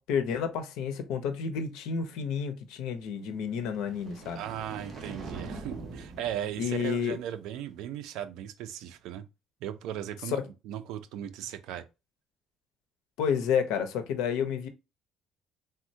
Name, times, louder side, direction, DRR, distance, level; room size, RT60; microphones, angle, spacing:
voice 1, 0.0-4.4 6.6-7.2 10.3-10.4 13.2-14.7, left 7 dB, 90° left, 0.6 m, -30 dB
sound 1, 3.4-7.6, right 3 dB, 35° right, 0.7 m, -44 dB
voice 2, 4.4-9.3 9.6-10.4 10.6-11.8, right 11 dB, 75° right, 0.4 m, -37 dB
3.5 x 2.1 x 2.6 m
cardioid pair, 160°, 0 cm